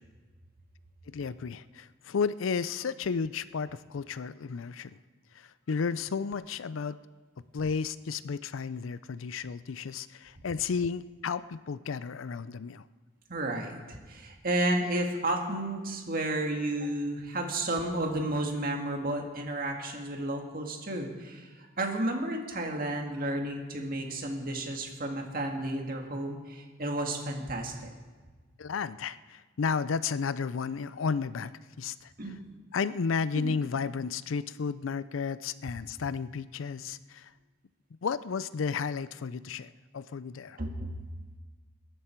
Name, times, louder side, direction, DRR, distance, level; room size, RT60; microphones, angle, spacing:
voice 1, 1.1-5.0 5.4-7.0 7.5-12.8 28.6-32.1 32.7-37.3 38.0-40.6, left 5 dB, 80° left, 16 dB, 0.5 m, -33 dB
voice 2, 13.3-27.9 32.2-32.4 33.3-33.5 40.6-40.9, right 1 dB, 45° right, 2 dB, 2.0 m, -32 dB
21.5 x 11.0 x 4.5 m, 1.4 s
head